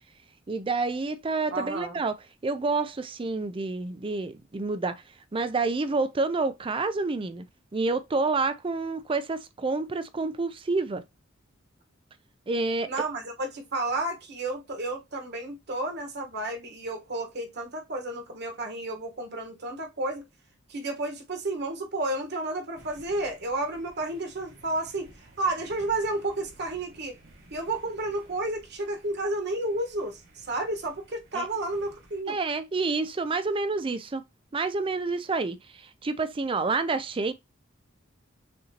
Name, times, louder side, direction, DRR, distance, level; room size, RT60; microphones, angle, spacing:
voice 1, 0.5-2.2 2.4-5.0 5.3-7.4 7.7-11.0 12.5-12.9 31.3-31.5 32.3-34.2 34.5-37.3, right 3 dB, 25° right, 0.4 m, -28 dB
voice 2, 1.5-2.0 12.9-20.2 20.7-27.1 27.5-32.4, right 2 dB, 55° right, 1.3 m, -31 dB
sound 1, 22.7-32.2, right 1 dB, 80° right, 2.2 m, -55 dB
6.5 x 2.7 x 2.8 m
head